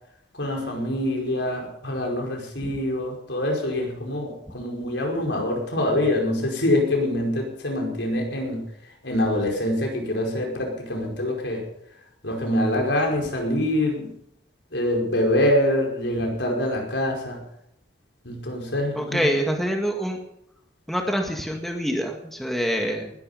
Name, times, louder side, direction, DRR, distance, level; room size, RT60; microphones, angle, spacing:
voice 1, 0.3-8.7 9.0-11.6 12.2-14.1 14.7-17.4 18.2-19.3, left 1 dB, 75° left, 1 dB, 5.1 m, -25 dB
voice 2, 19.0-20.2 20.9-23.1, equal, ahead, 2 dB, 1.9 m, -26 dB
20.0 x 11.5 x 5.7 m, 0.77 s
head